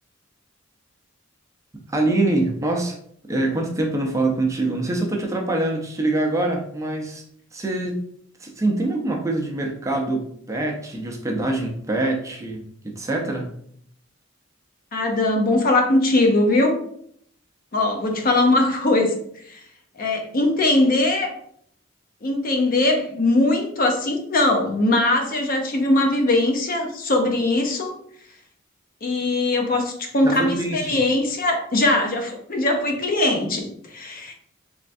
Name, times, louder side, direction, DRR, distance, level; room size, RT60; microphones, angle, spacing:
voice 1, 1.9-3.0 3.3-7.2 7.5-8.0 8.4-13.5 30.2-31.0, right 2 dB, 15° right, 0 dB, 0.5 m, -24 dB
voice 2, 14.9-16.8 17.7-19.2 19.5-19.6 20.0-21.3 22.2-27.9 29.0-34.3, left 2 dB, 45° left, 3 dB, 0.6 m, -21 dB
3.4 x 3.1 x 2.5 m, 0.66 s
head